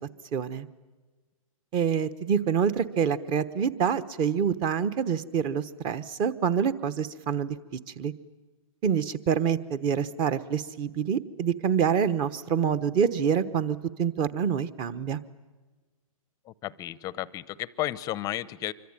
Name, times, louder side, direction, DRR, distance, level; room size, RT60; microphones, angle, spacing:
voice 1, 0.3-0.7 1.7-7.6 8.0-8.1 8.8-15.2, right 7 dB, 25° right, 14 dB, 1.1 m, -26 dB
voice 2, 16.5-18.7, left 14 dB, 20° left, 18 dB, 0.8 m, -33 dB
25.5 x 24.0 x 9.0 m, 1.3 s
hypercardioid pair, 135°, 18 cm